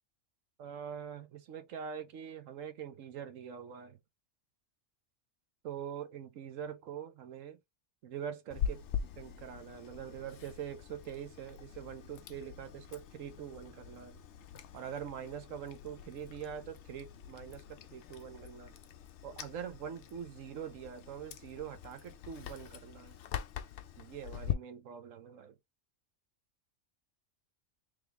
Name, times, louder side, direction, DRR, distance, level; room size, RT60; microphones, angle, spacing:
voice 1, 0.6-4.0 5.6-7.6 8.0-8.8 9.2-14.2 14.7-18.8 19.2-23.2 24.0-25.6, right 8 dB, 85° right, 1.2 m, -44 dB
Chewing mastication, 8.5-24.5, left 9 dB, 70° left, 0.9 m, -43 dB
3.7 x 3.2 x 3.3 m
omnidirectional pair, 1.3 m